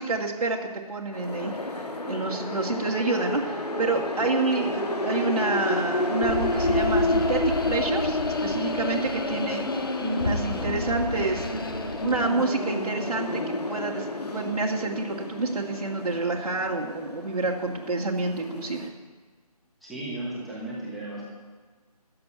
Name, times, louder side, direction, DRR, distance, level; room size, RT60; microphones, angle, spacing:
voice 1, 0.0-7.4 7.7-9.6 10.0-11.5 12.0-13.4 13.7-18.9, right 3 dB, 75° right, -2 dB, 2.2 m, -28 dB
sound 1, 1.1-18.9, left 2 dB, 85° left, 2.3 m, -30 dB
sound 2, 6.2-12.3, left 2 dB, 35° left, 0.9 m, -33 dB
voice 2, 19.8-21.2, right 1 dB, ahead, -9 dB, 1.2 m, -35 dB
13.5 x 7.9 x 9.5 m, 1.4 s
figure-of-eight pair, 170°, 20 cm